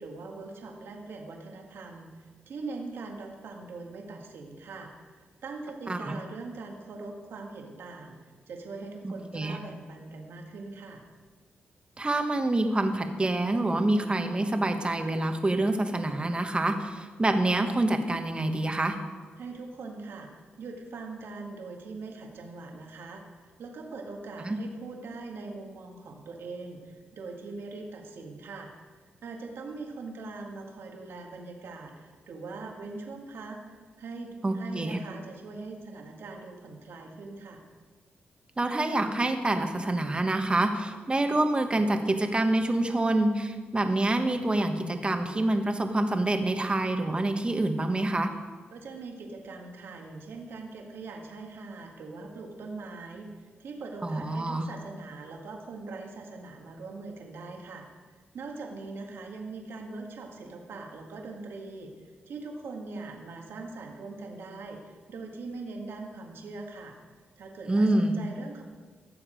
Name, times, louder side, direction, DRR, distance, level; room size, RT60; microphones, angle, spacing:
voice 1, 0.0-2.1 2.5-11.0 19.4-20.3 20.6-28.7 29.2-37.7 48.7-57.9 58.3-61.9 62.3-67.0 67.4-68.6, right 3 dB, 75° right, 1 dB, 1.8 m, -41 dB
voice 2, 9.0-9.6 12.0-19.0 24.4-24.6 34.4-35.0 38.6-48.3 54.0-54.7 67.7-68.2, right 2 dB, 25° right, 6 dB, 1.4 m, -26 dB
15.5 x 7.2 x 5.2 m, 1.5 s
cardioid pair, 60°, 4 cm